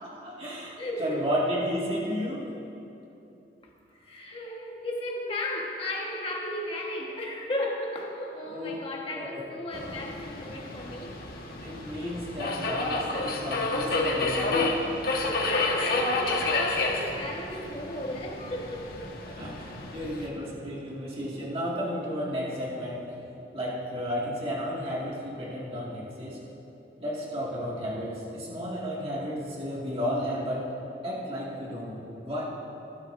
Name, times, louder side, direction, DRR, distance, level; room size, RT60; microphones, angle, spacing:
voice 1, 0.0-2.5 8.5-8.8 9.1-9.5 9.7-10.0 11.6-14.8 19.3-23.2 23.5-26.5 27.0-30.7 31.0-32.4, equal, 30° right, -5 dB, 2.1 m, -33 dB
voice 2, 0.8-1.2 4.0-11.1 15.1-19.0, left 1 dB, 30° left, -1 dB, 1.4 m, -35 dB
Subway metro underground, 9.7-20.3, left 2 dB, 55° left, 1.4 m, -30 dB
20.5 x 12.5 x 2.7 m, 2.9 s
head